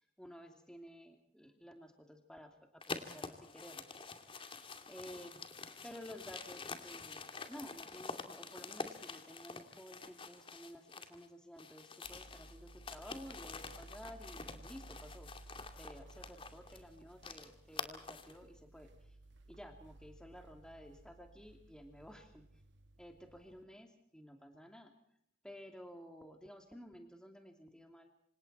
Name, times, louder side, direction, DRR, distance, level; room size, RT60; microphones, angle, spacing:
voice 1, 0.0-3.9 4.9-5.3 5.8-15.3 15.8-19.2 19.5-22.4 23.0-24.9 25.4-28.1, equal, 5° left, 5 dB, 2.8 m, -53 dB
sound 1, 2.8-11.3 11.6-18.4, left 4 dB, 30° left, 2.5 m, -47 dB
sound 2, 12.0-23.6, right 2 dB, 75° right, 2.3 m, -58 dB
27.5 x 27.0 x 4.3 m, 0.67 s
head